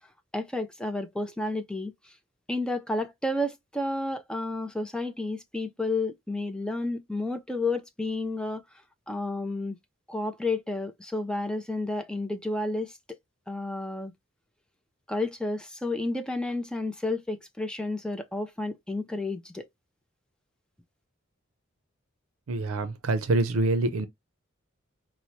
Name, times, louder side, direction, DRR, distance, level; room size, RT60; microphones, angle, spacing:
voice 1, 0.3-1.9 2.5-8.6 9.1-9.8 10.1-12.9 13.5-14.1 15.1-19.7, left 2 dB, 5° left, 0.4 m, -31 dB
voice 2, 22.5-24.1, right 2 dB, 85° right, 0.5 m, -26 dB
4.5 x 2.0 x 2.7 m
head